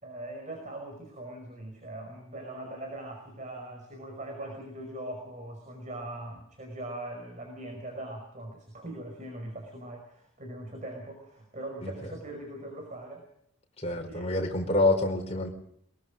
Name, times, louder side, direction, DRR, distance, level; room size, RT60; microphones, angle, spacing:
voice 1, 0.0-13.2 14.1-14.3, right 1 dB, 35° right, 3 dB, 5.4 m, -41 dB
voice 2, 13.8-15.5, left 2 dB, 30° left, 2 dB, 4.8 m, -27 dB
23.0 x 22.5 x 5.2 m, 0.70 s
head